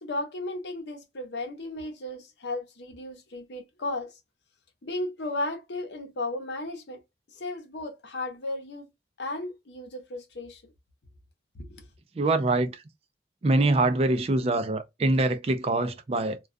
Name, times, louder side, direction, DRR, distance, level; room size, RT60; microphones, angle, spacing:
voice 1, 0.0-4.2 4.8-7.0 7.3-8.9 9.2-10.6 11.5-11.9, left 2 dB, 85° left, 0.8 m, -35 dB
voice 2, 12.2-12.8 13.4-16.4, right 2 dB, 35° right, 0.3 m, -24 dB
2.2 x 2.2 x 2.4 m
head